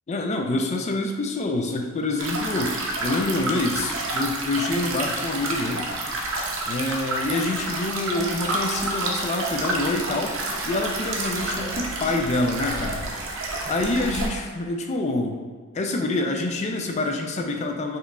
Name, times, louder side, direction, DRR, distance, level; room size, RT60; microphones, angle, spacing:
voice 1, 0.1-5.9 6.7-10.3 10.7-13.1 13.7-15.5 15.7-18.0, left 2 dB, 35° left, 3 dB, 0.3 m, -26 dB
sound 1, 2.2-14.3, right 2 dB, 65° right, 0.6 m, -29 dB
4.7 x 3.1 x 2.3 m, 1.5 s
head